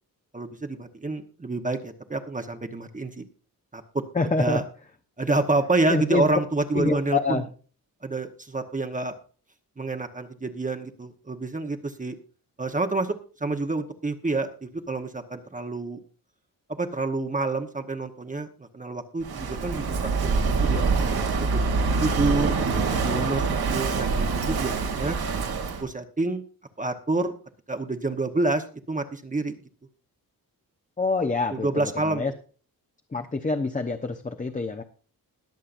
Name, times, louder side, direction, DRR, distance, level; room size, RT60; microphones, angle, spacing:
voice 1, 0.3-3.2 3.7-4.6 5.2-7.5 8.0-9.1 9.8-12.1 12.6-16.0 16.7-22.6 23.0-25.2 25.8-26.4 26.8-27.3 27.7-29.5 31.5-32.3, right 2 dB, 20° right, 6 dB, 1.1 m, -28 dB
voice 2, 4.2-4.6 5.9-6.2 6.7-7.4 31.0-32.3 33.1-34.8, left 3 dB, 20° left, 5 dB, 0.9 m, -26 dB
Walk footsteps / Wind / Waves surf, 19.2-25.8, right 4 dB, 85° right, 2.7 m, -25 dB
21.0 x 7.5 x 2.6 m, 0.38 s
wide cardioid pair, 155°, 36 cm